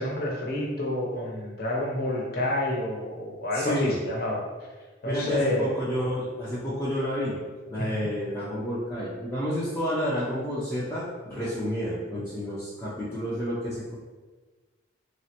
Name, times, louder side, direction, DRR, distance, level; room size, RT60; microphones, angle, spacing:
voice 1, 0.0-4.4 5.0-5.8 7.8-8.1, left 1 dB, 50° left, -3 dB, 0.6 m, -29 dB
voice 2, 3.5-4.0 5.0-7.4 7.7-13.9, equal, 10° left, -10 dB, 0.4 m, -30 dB
3.1 x 2.1 x 2.8 m, 1.3 s
head